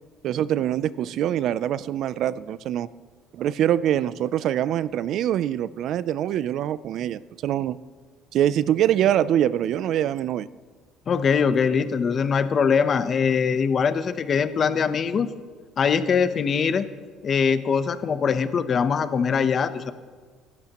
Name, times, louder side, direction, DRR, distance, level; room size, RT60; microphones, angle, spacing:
voice 1, 0.2-2.9 3.3-7.8 8.3-10.5, right 11 dB, 55° right, 18 dB, 0.4 m, -24 dB
voice 2, 11.1-15.3 15.8-16.9 17.2-19.9, left 6 dB, 35° left, 11 dB, 0.8 m, -22 dB
26.0 x 12.0 x 3.0 m, 1.5 s
cardioid pair, 135°, 0 cm